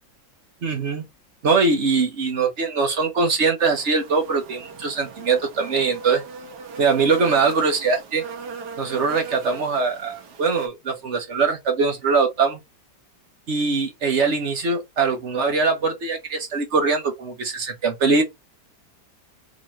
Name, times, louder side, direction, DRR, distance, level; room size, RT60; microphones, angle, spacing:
voice 1, 0.6-1.0 1.4-6.2 6.8-8.2 8.8-12.6 13.5-18.2, right 4 dB, 50° right, 1.0 m, -22 dB
sound 1, 3.6-10.7, right 5 dB, 65° right, 1.5 m, -38 dB
3.7 x 3.1 x 3.0 m
omnidirectional pair, 2.0 m